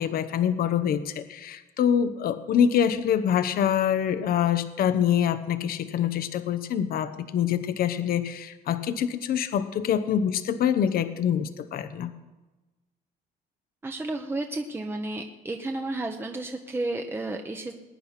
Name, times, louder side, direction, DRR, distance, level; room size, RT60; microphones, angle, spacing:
voice 1, 0.0-12.1, left 9 dB, 60° left, 11 dB, 1.0 m, -25 dB
voice 2, 13.8-17.8, right 2 dB, 15° right, 4 dB, 1.1 m, -32 dB
20.5 x 9.7 x 5.9 m, 1.1 s
cardioid pair, 110°, 17 cm